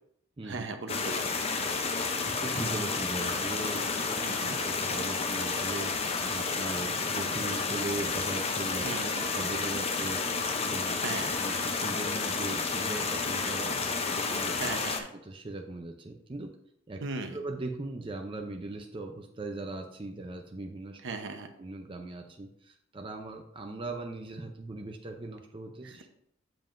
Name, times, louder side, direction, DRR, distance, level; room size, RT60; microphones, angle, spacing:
voice 1, 0.4-1.2 4.2-4.6 8.8-9.3 11.0-11.4 14.5-15.1 17.0-17.4 21.0-21.5 25.8-26.1, right 3 dB, 65° right, 5 dB, 0.9 m, -37 dB
sound 1, 0.9-15.0, left 4 dB, 30° left, 0.6 m, -31 dB
voice 2, 2.2-4.1 4.3-5.9 6.2-8.9 9.3-10.2 10.6-11.0 11.4-14.6 15.3-16.5 16.9-17.0 17.3-21.0 21.6-26.1, right 2 dB, 25° right, 2 dB, 0.5 m, -39 dB
7.6 x 7.0 x 2.6 m, 0.72 s
head